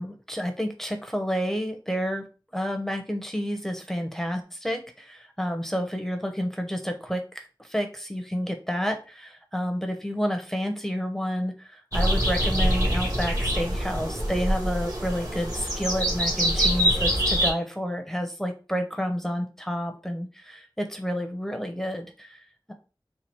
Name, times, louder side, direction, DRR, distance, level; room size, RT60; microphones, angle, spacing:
voice 1, 0.0-2.2 2.5-22.4 22.7-22.8, equal, 5° left, 5 dB, 0.9 m, -30 dB
sound 1, 11.9-17.5, equal, 40° right, 1.9 m, -25 dB
4.4 x 2.4 x 4.5 m, 0.33 s
wide cardioid pair, 45°, 9 cm